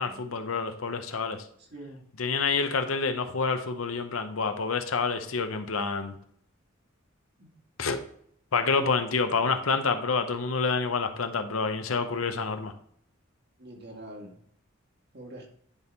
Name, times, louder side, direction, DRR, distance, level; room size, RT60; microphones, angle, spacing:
voice 1, 0.0-1.4 2.2-6.1 7.8-8.0 8.5-12.7, left 4 dB, 90° left, 8 dB, 0.8 m, -28 dB
voice 2, 1.6-2.0 7.4-7.5 13.6-14.4 15.1-15.5, right 1 dB, 55° right, 1 dB, 1.6 m, -45 dB
10.5 x 3.7 x 4.0 m, 0.64 s
head